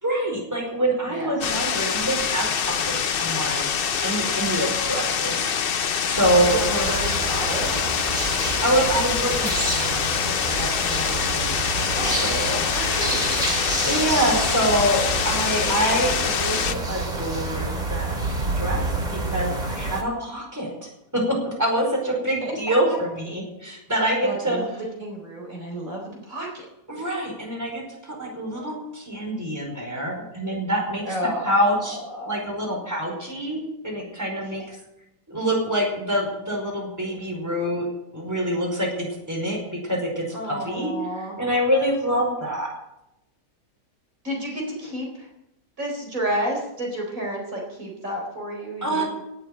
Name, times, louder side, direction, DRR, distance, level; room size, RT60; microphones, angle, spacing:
voice 1, 0.0-3.7 4.0-5.4 6.0-6.9 8.6-12.6 13.9-18.1 18.6-24.6 26.9-31.1 31.4-32.0 32.3-34.8 35.3-37.9 38.1-39.6 39.8-42.7 48.8-49.1, right 1 dB, 10° right, -1 dB, 5.1 m, -26 dB
sound 1, 1.4-16.7, left 7 dB, 55° left, 0.6 m, -25 dB
sound 2, 6.1-20.0, right 2 dB, 25° right, 2.5 m, -28 dB
voice 2, 6.3-7.7 12.0-12.2 12.7-13.5 22.1-22.5 24.2-26.6 31.0-31.5 31.9-32.4 40.3-41.4 44.2-45.3 45.8-49.1, right 1 dB, 50° right, -1 dB, 4.7 m, -31 dB
18.0 x 8.6 x 8.9 m, 0.87 s
omnidirectional pair, 1.8 m